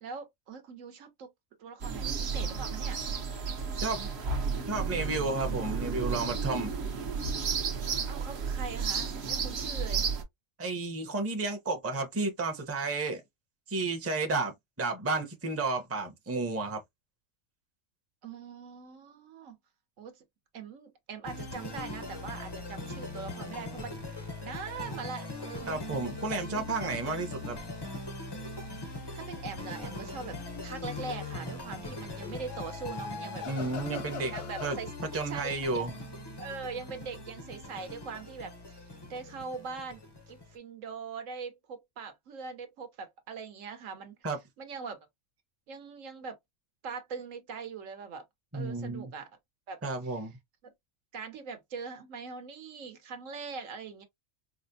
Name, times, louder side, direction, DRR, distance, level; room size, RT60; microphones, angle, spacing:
voice 1, 0.0-1.3 1.6-3.0 8.1-10.0 18.2-19.6 20.0-20.2 20.5-24.0 24.4-25.8 26.3-26.7 28.7-30.4 30.6-33.4 34.3-34.9 35.3-35.9 36.4-44.2 44.6-45.0 45.7-46.4 46.8-48.2 48.5-49.3 49.7-50.2 50.6-50.7 51.1-54.0, right 5 dB, 75° right, 1.2 m, -42 dB
sound 1, 1.8-10.2, right 5 dB, 55° right, 1.0 m, -32 dB
voice 2, 4.7-6.7 10.6-13.2 13.7-14.5 14.8-16.8 25.7-27.6 33.5-34.3 34.6-34.8 35.1-35.9 44.2-44.4 48.5-49.1 49.8-50.4, right 3 dB, 15° right, 0.6 m, -32 dB
sound 2, 21.2-40.6, left 2 dB, 30° left, 0.5 m, -41 dB
sound 3, 30.2-31.2 32.2-34.9, left 6 dB, 65° left, 0.8 m, -43 dB
4.8 x 2.1 x 2.7 m
omnidirectional pair, 1.4 m